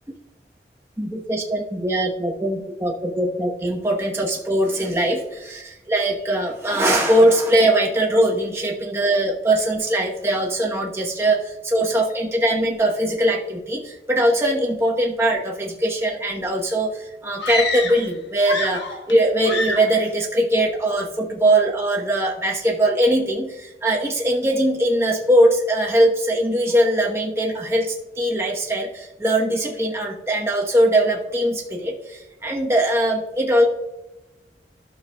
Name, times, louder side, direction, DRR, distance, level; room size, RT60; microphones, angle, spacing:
voice 1, 1.0-16.9 17.2-18.8 19.1-33.7, right 1 dB, 15° right, -1 dB, 1.0 m, -21 dB
sound 1, 17.4-18.1 18.4-19.2 19.4-20.0, left 3 dB, 80° left, 1.1 m, -27 dB
12.5 x 6.7 x 2.3 m, 1.0 s
head